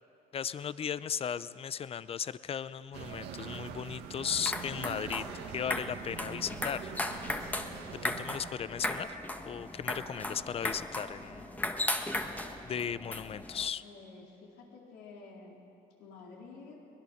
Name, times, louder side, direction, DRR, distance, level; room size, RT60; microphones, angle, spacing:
voice 1, 0.3-5.3 5.5-6.9 8.0-9.1 9.5-11.5 12.6-13.8, left 8 dB, 35° left, 16 dB, 0.6 m, -36 dB
sound 1, 2.9-8.5, right 7 dB, 85° right, 1.8 m, -44 dB
sound 2, 4.2-13.7, left 1 dB, 10° left, 1.4 m, -37 dB
voice 2, 13.8-15.6 16.0-16.8, left 4 dB, 85° left, -2 dB, 4.2 m, -50 dB
23.0 x 20.0 x 6.5 m, 2.8 s
cardioid pair, 110°, 17 cm